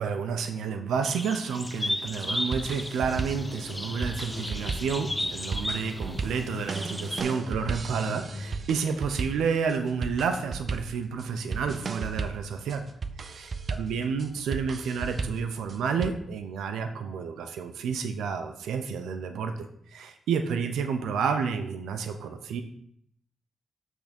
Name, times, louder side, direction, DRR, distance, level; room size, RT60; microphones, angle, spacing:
voice 1, 0.0-12.8 13.2-22.6, right 6 dB, 90° right, 7 dB, 0.6 m, -30 dB
sound 1, 1.0-7.2, left 1 dB, 10° left, 0.6 m, -35 dB
sound 2, 2.1-16.1, right 4 dB, 50° right, 0.5 m, -35 dB
sound 3, 3.1-8.7, left 2 dB, 70° left, 0.7 m, -41 dB
8.8 x 3.6 x 5.2 m, 0.68 s
cardioid pair, 75°, 0 cm